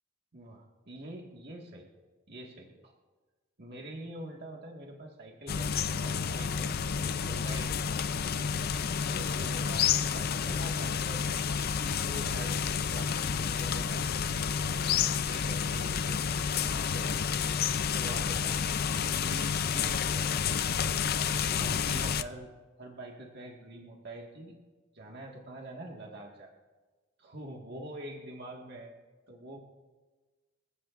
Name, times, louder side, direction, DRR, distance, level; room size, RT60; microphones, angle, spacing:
voice 1, 0.3-1.9 2.3-2.9 3.6-7.7 8.3-8.4 9.1-11.2 11.8-14.1 14.6-17.4 17.9-20.3 21.2-22.5 22.8-24.5 24.9-26.5 27.2-28.9 29.3-29.6, right 1 dB, 55° right, -1 dB, 1.7 m, -45 dB
sound 1, 5.5-22.2, left 7 dB, 50° left, 0.5 m, -30 dB
26.0 x 15.0 x 2.5 m, 1.3 s
head